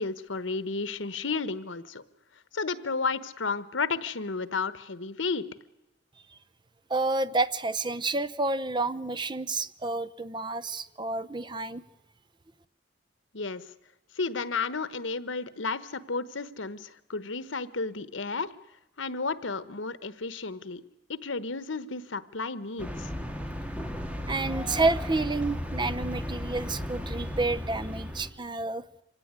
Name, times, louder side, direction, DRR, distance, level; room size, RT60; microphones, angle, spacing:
voice 1, 0.0-2.0 2.5-5.5 13.3-13.6 14.1-18.5 19.0-20.8 21.1-23.1, left 4 dB, 85° left, 1.2 m, -32 dB
voice 2, 6.9-11.8 24.3-28.8, right 3 dB, 25° right, 0.8 m, -29 dB
sound 1, 22.8-28.3, left 1 dB, 5° right, 2.2 m, -35 dB
25.5 x 17.5 x 9.7 m
head